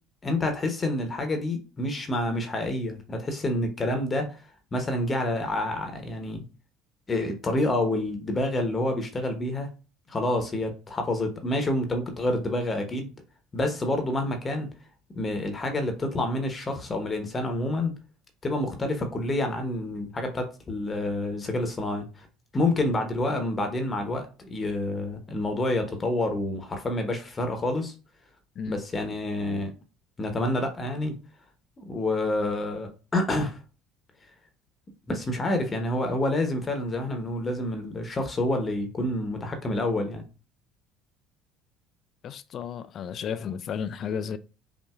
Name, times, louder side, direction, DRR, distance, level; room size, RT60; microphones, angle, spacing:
voice 1, 0.2-4.4 4.7-6.4 7.1-9.7 10.1-13.1 13.5-14.7 15.1-17.9 18.4-22.3 22.5-27.9 28.7-29.7 30.2-31.2 31.8-33.6 35.1-40.2, left 1 dB, 30° left, 1.0 m, -28 dB
voice 2, 42.2-44.4, left 7 dB, 50° left, 0.4 m, -33 dB
5.5 x 2.7 x 2.4 m
hypercardioid pair, 65°, 0 cm